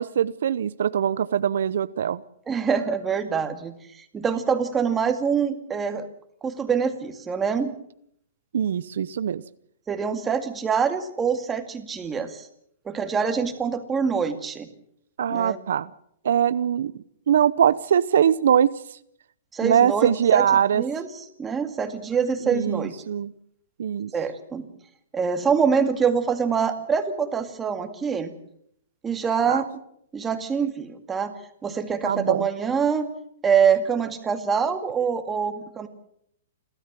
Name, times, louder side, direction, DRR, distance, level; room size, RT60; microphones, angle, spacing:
voice 1, 0.0-2.2 8.5-9.4 15.2-15.9 16.2-18.7 19.6-20.8 22.5-23.3 23.8-24.1 29.5-29.6 32.0-32.5, right 9 dB, 75° right, 15 dB, 0.7 m, -22 dB
voice 2, 2.5-6.1 6.4-7.7 9.9-12.5 12.9-14.7 15.3-15.6 19.5-20.5 20.8-22.9 24.1-24.7 25.1-28.3 29.0-29.7 30.1-31.3 31.6-33.1 33.4-35.9, right 6 dB, 15° right, 7 dB, 2.1 m, -25 dB
29.0 x 13.5 x 7.5 m, 0.71 s
hypercardioid pair, 150°, 0 cm